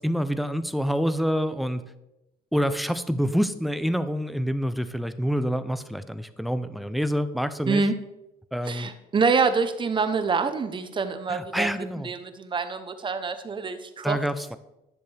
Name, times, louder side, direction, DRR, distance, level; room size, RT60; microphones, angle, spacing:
voice 1, 0.0-1.8 2.5-7.8 8.5-8.9 11.3-12.1 14.0-14.6, equal, ahead, 11 dB, 0.5 m, -27 dB
voice 2, 7.7-8.0 8.6-11.7 12.0-14.2, right 4 dB, 30° right, 10 dB, 0.8 m, -26 dB
10.5 x 6.9 x 3.4 m, 0.93 s
cardioid pair, 110°, 17 cm